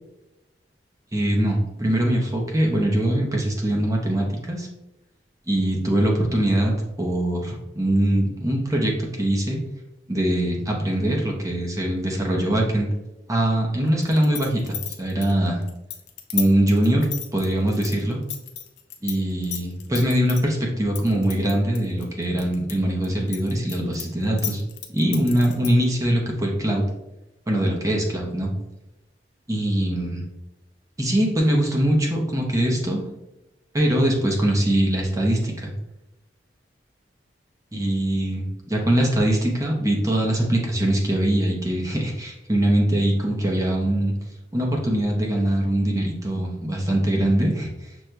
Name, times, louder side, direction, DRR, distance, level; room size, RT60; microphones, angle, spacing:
voice 1, 1.1-4.7 5.5-6.7 7.0-9.6 10.1-12.9 13.3-15.6 16.3-17.1 17.3-18.2 19.0-24.6 24.9-26.8 27.5-28.5 29.5-30.2 31.0-33.1 33.7-35.7 37.7-44.1 44.5-47.7, right 1 dB, 20° right, -1 dB, 0.7 m, -22 dB
sound 1, 14.0-19.2 19.4-20.4 21.0-22.7 23.0-25.8, left 10 dB, 70° left, 0.6 m, -32 dB
6.1 x 2.8 x 2.2 m, 0.96 s
head